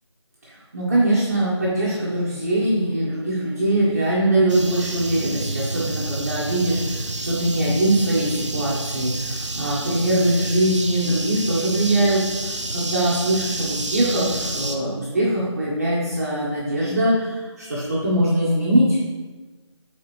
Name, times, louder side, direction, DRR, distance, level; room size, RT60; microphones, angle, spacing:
voice 1, 0.7-19.0, right 1 dB, 30° right, -7 dB, 1.2 m, -22 dB
sound 1, 4.5-14.8, right 2 dB, 75° right, 0.9 m, -29 dB
9.3 x 4.1 x 3.2 m, 1.3 s
figure-of-eight pair, 165°, 16 cm